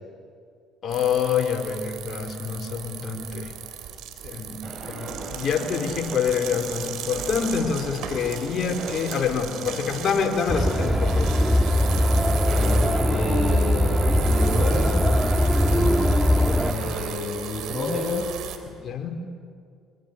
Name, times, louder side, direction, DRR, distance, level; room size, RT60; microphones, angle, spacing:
voice 1, 0.8-3.5 4.2-4.6 4.9-11.3 15.7-16.0 18.8-19.1, left 6 dB, 50° left, 4 dB, 4.8 m, -26 dB
sound 1, 0.9-18.6, right 9 dB, 65° right, 3.2 m, -36 dB
sound 2, 4.6-17.2, right 2 dB, 40° right, 7.2 m, -38 dB
sound 3, 10.5-16.7, left 1 dB, ahead, 2.0 m, -21 dB
voice 2, 12.6-15.1 16.7-18.3, left 2 dB, 20° left, -1 dB, 6.9 m, -29 dB
25.5 x 23.0 x 9.8 m, 2.2 s
hypercardioid pair, 60°, 0 cm